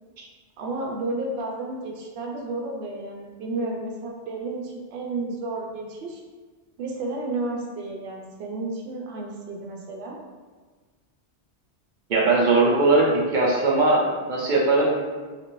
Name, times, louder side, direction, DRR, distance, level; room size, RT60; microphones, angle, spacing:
voice 1, 0.6-6.2 6.8-10.2, right 2 dB, 85° right, 0 dB, 0.8 m, -32 dB
voice 2, 12.1-15.0, right 2 dB, 55° right, -3 dB, 0.7 m, -20 dB
3.3 x 2.5 x 3.0 m, 1.4 s
omnidirectional pair, 1.0 m